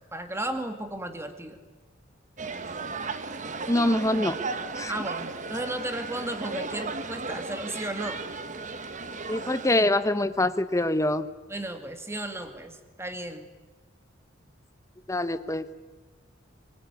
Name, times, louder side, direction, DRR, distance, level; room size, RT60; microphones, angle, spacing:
voice 1, 0.1-1.6 4.9-8.2 11.5-13.4, right 1 dB, 15° right, 8 dB, 2.2 m, -34 dB
sound 1, 2.4-9.8, right 4 dB, 40° right, 1.3 m, -35 dB
voice 2, 3.7-4.4 4.8-4.9 9.3-11.3 15.1-15.7, left 1 dB, 15° left, 11 dB, 1.0 m, -24 dB
23.0 x 23.0 x 9.6 m, 1.2 s
head